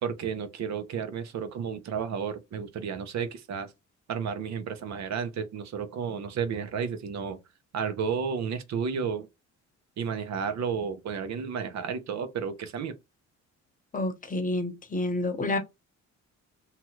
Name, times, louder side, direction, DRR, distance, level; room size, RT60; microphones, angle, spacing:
voice 1, 0.0-3.7 4.1-7.4 7.7-9.3 10.0-12.9, right 6 dB, 65° right, 0.8 m, -32 dB
voice 2, 13.9-15.6, left 2 dB, 25° left, 0.9 m, -29 dB
2.9 x 2.4 x 2.9 m
cardioid pair, 90°, 30 cm